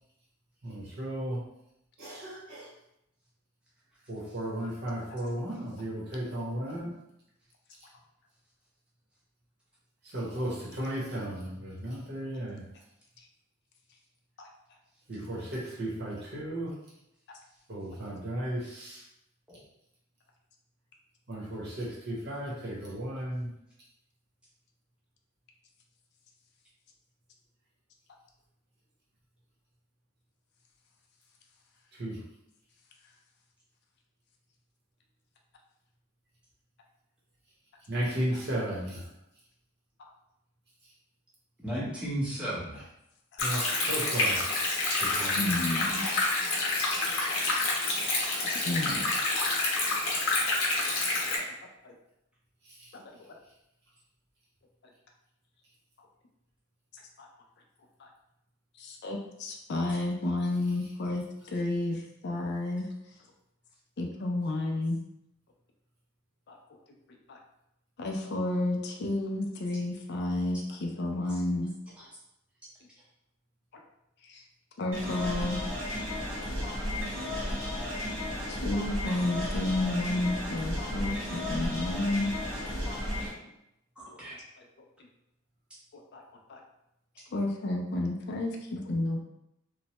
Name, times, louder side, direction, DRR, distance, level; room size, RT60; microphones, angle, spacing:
voice 1, 0.6-1.4 2.0-2.7 4.1-6.9 10.0-12.6 15.1-16.7 17.7-19.0 21.3-23.5 32.0-32.2 37.9-39.1 43.4-44.6 45.0-45.5 52.7-52.9, right 1 dB, 50° right, -5 dB, 0.9 m, -35 dB
voice 2, 41.6-42.9 51.0-51.1 51.4-51.5 72.0-72.1 84.0-84.4, right 1 dB, 5° right, -7 dB, 0.7 m, -35 dB
Stream, 43.4-51.4, left 2 dB, 75° left, 0.8 m, -28 dB
voice 3, 45.3-46.1 48.6-49.1 50.8-50.9 51.4-51.5 51.8-51.9 52.9-53.3 57.2-57.3 58.0-58.1 58.8-62.0 62.2-62.9 64.0-65.0 66.5-66.6 67.3-67.4 68.0-71.7 74.2-74.4 74.8-75.6 77.6-77.7 78.5-82.3 84.6-84.7 85.9-86.2 86.5-86.6 87.3-89.2, left 2 dB, 50° left, 1 dB, 0.4 m, -31 dB
sound 1, 74.9-83.3, left 1 dB, 80° right, 1.1 m, -34 dB
3.1 x 2.1 x 2.9 m, 0.82 s
head